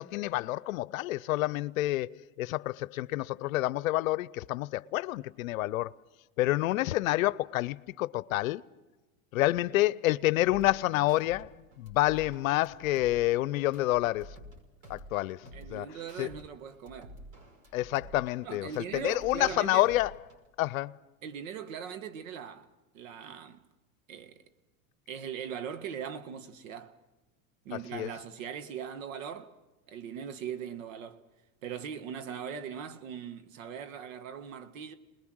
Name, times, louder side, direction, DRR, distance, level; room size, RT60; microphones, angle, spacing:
voice 1, 0.0-2.1 2.4-5.9 6.4-8.6 9.3-11.5 11.8-14.3 14.9-15.4 15.7-15.8 16.2-16.3 17.7-20.1 20.6-20.9 27.9-28.1, left 17 dB, 80° left, 0.7 m, -28 dB
sound 1, 10.5-11.4 11.7-14.6 14.8-16.4 16.7-19.5 19.8-20.5, equal, 50° right, 5.7 m, -50 dB
voice 2, 15.5-17.2 18.4-19.9 21.2-22.7 22.9-23.6 24.1-24.4 25.1-27.0 27.7-29.5 29.9-31.2 31.6-34.9, right 8 dB, 70° right, 1.7 m, -40 dB
28.5 x 20.5 x 6.3 m
supercardioid pair, 125°, 40 cm